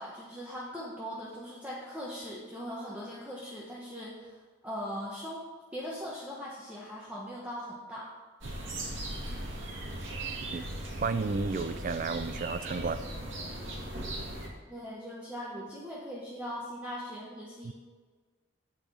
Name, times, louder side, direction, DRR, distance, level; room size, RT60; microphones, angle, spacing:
voice 1, 0.0-5.5 5.7-8.1 14.7-17.7, equal, 5° right, 1.1 m, -40 dB
sound 1, 8.4-14.5, right 1 dB, 70° right, 2.1 m, -38 dB
voice 2, 11.0-13.0 17.6-17.7, right 4 dB, 40° right, 0.4 m, -32 dB
8.2 x 5.2 x 7.3 m
head